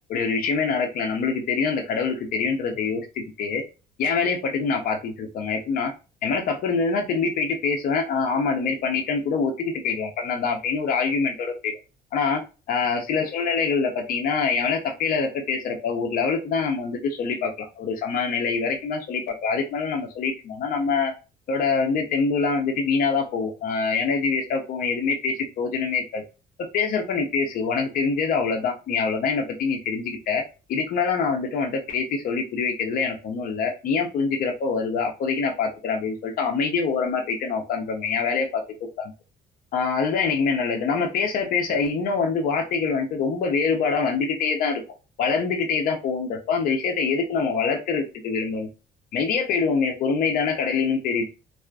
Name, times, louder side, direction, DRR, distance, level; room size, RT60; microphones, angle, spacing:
voice 1, 0.1-3.6 4.0-5.9 6.2-11.7 12.1-12.4 12.7-21.1 21.5-26.2 26.7-30.4 30.7-38.6 39.0-39.1 39.7-44.8 45.2-48.7 49.1-51.3, left 5 dB, 55° left, 3 dB, 0.5 m, -25 dB
2.4 x 2.3 x 2.2 m, 0.31 s
cardioid pair, 110°, 17 cm